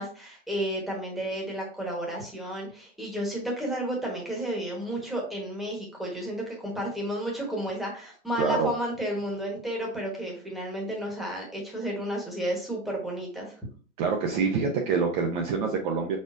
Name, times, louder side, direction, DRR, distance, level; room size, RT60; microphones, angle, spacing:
voice 1, 0.0-13.6, equal, ahead, -2 dB, 1.3 m, -32 dB
voice 2, 8.4-8.7 14.0-16.2, right 5 dB, 35° right, 2 dB, 0.7 m, -26 dB
4.9 x 4.2 x 2.6 m, 0.42 s
hypercardioid pair, 135°, 41 cm